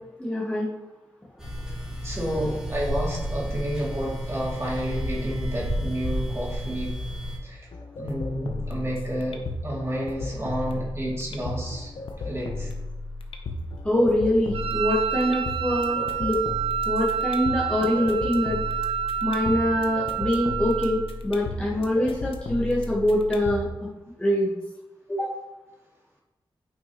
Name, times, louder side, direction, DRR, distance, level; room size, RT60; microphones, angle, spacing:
voice 1, 0.2-0.7 13.8-16.4 16.9-18.6 19.2-23.6 24.2-24.5 25.1-25.3, left 1 dB, 10° left, -5 dB, 1.2 m, -24 dB
sound 1, 1.4-7.4, equal, 5° right, 2.6 m, -31 dB
voice 2, 2.0-7.0 7.4-7.6 8.0-9.4 9.6-11.9 12.2-12.7, right 1 dB, 30° right, -4 dB, 2.4 m, -30 dB
sound 2, 7.7-23.7, left 2 dB, 85° left, 0.8 m, -35 dB
Wind instrument woodwind instrument, 14.5-21.1, right 9 dB, 85° right, 0.4 m, -29 dB
9.1 x 5.4 x 3.0 m, 1.1 s
wide cardioid pair, 85°, 9 cm